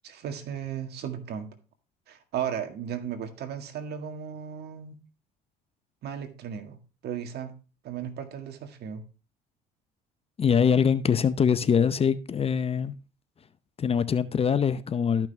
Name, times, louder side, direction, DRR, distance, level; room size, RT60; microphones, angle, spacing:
voice 1, 0.0-1.5 2.1-5.0 6.0-6.8 7.0-7.5 7.8-9.0, right 8 dB, 60° right, 1.9 m, -35 dB
voice 2, 10.4-12.9 13.8-15.3, left 7 dB, 30° left, 0.7 m, -23 dB
13.5 x 6.0 x 3.3 m
supercardioid pair, 80°, 19 cm